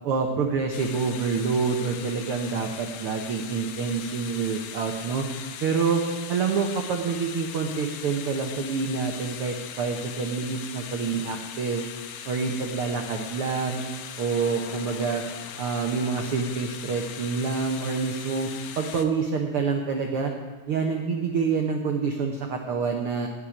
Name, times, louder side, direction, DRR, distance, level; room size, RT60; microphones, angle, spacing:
voice 1, 0.0-5.3 5.6-6.0 6.3-11.8 12.3-13.8 14.2-15.2 15.6-18.5 18.8-20.3 20.7-23.3, right 5 dB, 80° right, 3 dB, 1.2 m, -27 dB
sound 1, 0.7-19.1, left 8 dB, 85° left, 1.4 m, -40 dB
16.5 x 5.6 x 10.0 m, 1.4 s
omnidirectional pair, 3.9 m